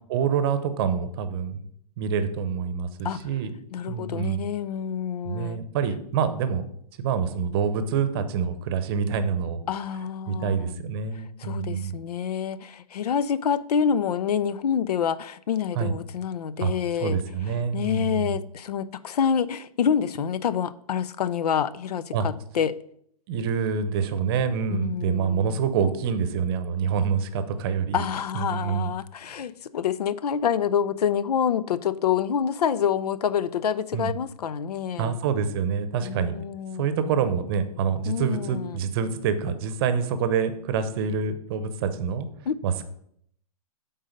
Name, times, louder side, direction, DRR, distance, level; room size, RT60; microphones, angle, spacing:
voice 1, 0.1-1.6 2.0-3.6 3.9-4.5 5.3-6.6 7.0-9.6 10.3-11.9 15.7-15.9 16.6-16.7 17.0-18.4 22.1-22.3 23.3-28.0 28.3-29.0 29.2-29.4 33.9-34.1 35.0-36.3 36.8-42.3 42.6-42.9, right 6 dB, 40° right, 0.8 m, -26 dB
voice 2, 3.7-5.6 9.7-10.7 11.4-17.2 17.7-22.7 24.7-25.6 27.9-35.2 36.0-36.9 38.1-38.8 42.5-42.6, left 8 dB, 85° left, 0.5 m, -27 dB
7.9 x 3.9 x 5.2 m
hypercardioid pair, 145°, 20 cm